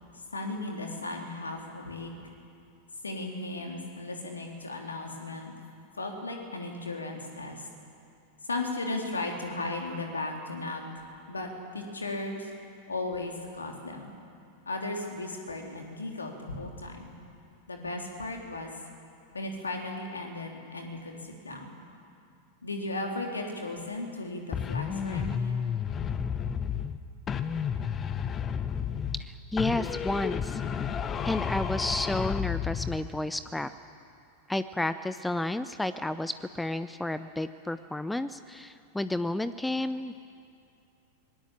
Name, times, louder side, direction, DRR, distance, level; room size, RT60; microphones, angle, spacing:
voice 1, 0.3-2.1 3.0-5.5 6.0-7.7 8.4-10.8 11.3-12.5 12.9-14.1 14.6-17.1 17.7-18.7 19.3-21.8 22.6-25.6, left 2 dB, 75° left, 2 dB, 3.3 m, -36 dB
sound 1, 24.5-27.0 27.3-29.3 29.6-33.0, left 7 dB, 25° left, 1.0 m, -31 dB
voice 2, 29.3-30.6 31.2-33.7 34.5-40.1, left 2 dB, 5° left, 13 dB, 0.6 m, -31 dB
25.5 x 20.5 x 7.4 m, 2.5 s
figure-of-eight pair, 90°, 0 cm